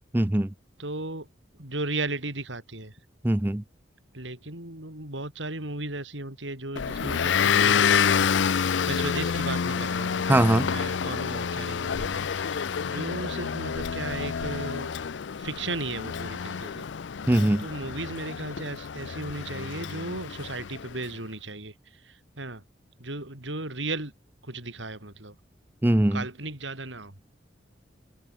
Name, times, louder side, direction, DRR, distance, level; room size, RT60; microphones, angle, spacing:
voice 1, 0.1-0.5 3.2-3.6 10.3-10.7 17.3-17.6 25.8-26.2, right 1 dB, 10° right, 0.5 m, -21 dB
voice 2, 0.8-1.3 1.6-3.0 4.1-14.9 15.4-16.8 17.6-22.6 23.0-24.1 24.4-25.4 26.1-27.2, right 2 dB, 90° right, 5.6 m, -36 dB
Motor vehicle (road) / Engine, 6.8-21.0, left 7 dB, 80° left, 0.5 m, -28 dB
head